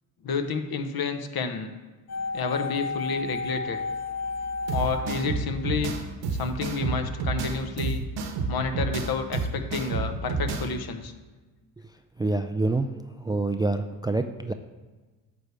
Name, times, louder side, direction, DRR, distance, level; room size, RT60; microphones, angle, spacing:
voice 1, 0.2-1.7 2.3-3.8 4.7-5.9 6.3-8.0 8.5-11.1, left 5 dB, 55° left, 7 dB, 1.0 m, -30 dB
sound 1, 2.1-6.2 6.4-6.5, left 3 dB, 35° left, 0.8 m, -33 dB
sound 2, 4.7-10.7, right 4 dB, 70° right, 1.2 m, -29 dB
voice 2, 12.2-12.9 13.2-14.5, right 2 dB, 10° right, 7 dB, 0.3 m, -26 dB
9.0 x 3.4 x 6.8 m, 1.3 s
supercardioid pair, 65°, 45 cm